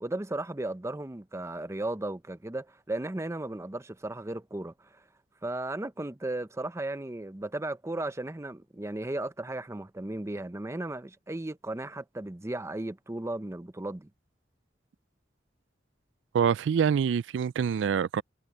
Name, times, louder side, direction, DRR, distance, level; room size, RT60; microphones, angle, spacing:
voice 1, 0.0-5.0 5.4-14.1, right 2 dB, 15° right, 0.6 m, -35 dB
voice 2, 16.3-18.2, right 7 dB, 80° right, 0.3 m, -25 dB
head